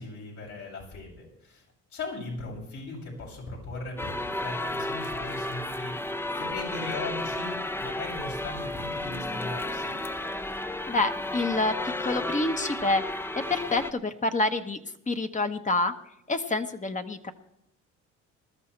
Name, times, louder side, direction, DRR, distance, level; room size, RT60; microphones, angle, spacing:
voice 1, 0.0-1.6 1.9-5.9 6.4-10.0, left 3 dB, 75° left, -4 dB, 7.0 m, -38 dB
sound 1, 4.0-13.9, left 1 dB, 10° left, 0.6 m, -33 dB
voice 2, 10.9-13.2 13.5-15.9 16.3-17.3, left 2 dB, 25° left, 7 dB, 1.1 m, -28 dB
20.5 x 13.0 x 3.3 m, 0.80 s
cardioid pair, 90°, 30 cm